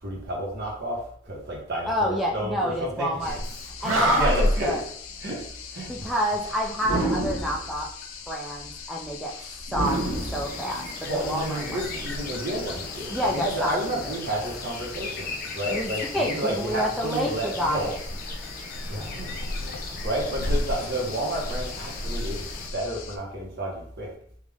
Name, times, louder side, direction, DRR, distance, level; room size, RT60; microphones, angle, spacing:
voice 1, 0.0-3.4 3.9-4.8 5.2-5.4 5.7-6.1 11.0-17.9 18.9-19.4 20.0-24.1, right 1 dB, 55° right, -2 dB, 1.1 m, -31 dB
voice 2, 1.9-3.4 3.8-4.8 5.9-7.9 8.3-9.3 9.7-10.8 11.1-11.8 13.1-13.8 14.1-14.2 15.7-17.9, equal, ahead, -3 dB, 0.4 m, -28 dB
sound 1, 3.2-23.2, left 2 dB, 90° left, 0.5 m, -35 dB
Animal, 3.5-3.6 3.8-4.6 6.8-7.7 9.7-11.0, right 1 dB, 80° right, 1.0 m, -27 dB
sound 2, 9.8-22.7, left 3 dB, 45° left, 0.6 m, -38 dB
3.6 x 2.4 x 3.5 m, 0.63 s
head